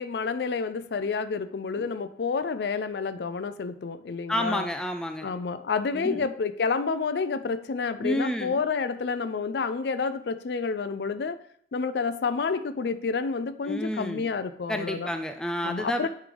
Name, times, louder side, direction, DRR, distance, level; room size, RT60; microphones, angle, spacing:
voice 1, 0.0-4.7 5.2-11.4 11.7-15.1 15.6-16.1, left 5 dB, 75° left, 12 dB, 0.4 m, -29 dB
voice 2, 4.3-5.3 5.9-6.3 8.0-8.6 13.7-14.3 14.7-16.1, equal, 5° left, 6 dB, 0.3 m, -30 dB
9.4 x 3.2 x 3.8 m, 0.63 s
head